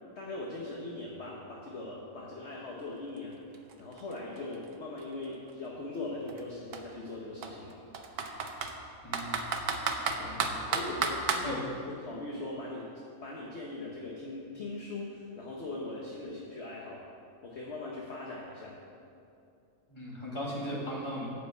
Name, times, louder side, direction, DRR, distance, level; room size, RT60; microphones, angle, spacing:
voice 1, 0.1-3.4 3.8-7.8 10.2-10.4 10.7-12.9 13.2-17.0 17.4-18.8, left 2 dB, 45° left, -3 dB, 1.4 m, -40 dB
Computer keyboard, 3.2-3.3 3.5-5.5 6.3-6.4 6.7-6.8 7.4-8.7 9.1-11.5, right 5 dB, 85° right, 1.4 m, -32 dB
voice 2, 9.0-9.4 10.2-10.5 11.5-11.6 19.9-21.3, equal, 20° left, -5 dB, 2.5 m, -37 dB
11.5 x 5.5 x 8.0 m, 2.6 s
omnidirectional pair, 1.6 m